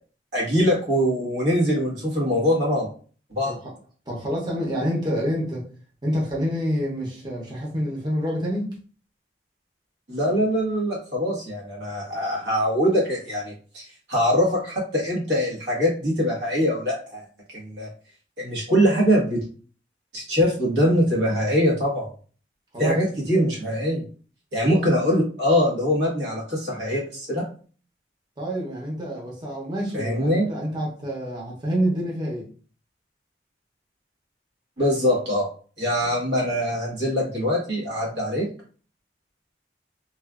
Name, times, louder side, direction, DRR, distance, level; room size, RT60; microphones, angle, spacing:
voice 1, 0.3-2.9 3.3-3.5 10.1-17.2 17.5-17.9 18.4-19.5 20.1-22.0 22.8-24.0 24.5-27.4 29.9-30.5 34.8-35.5 35.8-38.5, equal, 90° right, -4 dB, 1.5 m, -23 dB
voice 2, 4.1-5.7 6.0-8.7 22.7-23.0 24.6-24.9 28.4-32.5, equal, 25° right, -4 dB, 0.8 m, -27 dB
3.1 x 2.4 x 2.4 m, 0.41 s
head